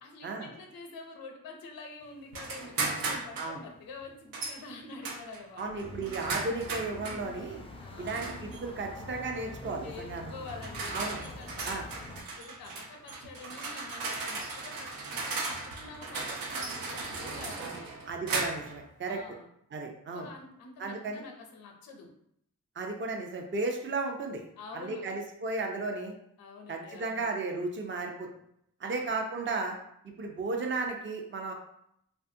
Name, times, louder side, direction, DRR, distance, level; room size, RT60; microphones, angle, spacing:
voice 1, 0.0-5.6 7.8-8.2 9.8-11.8 12.4-17.9 19.1-19.5 20.1-22.1 24.6-25.1 26.4-27.3 28.8-29.1, left 3 dB, 85° left, 3 dB, 0.6 m, -47 dB
sound 1, 2.3-3.6 4.3-4.6 5.0-7.2 8.1-8.6 9.6-9.8 10.5-18.8, right 3 dB, 80° right, 0.5 m, -36 dB
voice 2, 5.6-7.6 8.0-10.3 10.9-11.2 11.6-11.9 18.1-19.2 19.7-20.3 20.8-21.2 22.8-24.4 24.7-26.1 26.7-28.3 28.8-29.8 30.2-31.5, right 3 dB, 35° right, 2 dB, 0.5 m, -34 dB
sound 2, 5.8-12.2, left 2 dB, 15° left, 0.5 m, -45 dB
2.5 x 2.3 x 2.6 m, 0.74 s
supercardioid pair, 40°, 34 cm